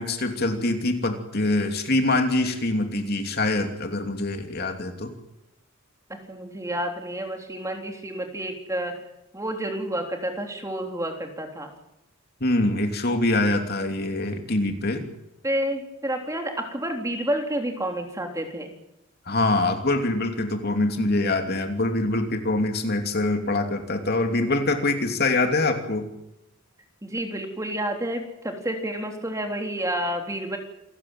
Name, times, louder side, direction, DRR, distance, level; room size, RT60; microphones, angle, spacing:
voice 1, 0.0-5.1 12.4-15.1 19.3-26.1, left 2 dB, 50° left, 5 dB, 2.9 m, -24 dB
voice 2, 6.1-9.0 9.3-11.7 15.4-18.7 27.0-30.6, right 1 dB, 15° right, 3 dB, 3.5 m, -30 dB
28.0 x 15.0 x 9.2 m, 0.87 s
head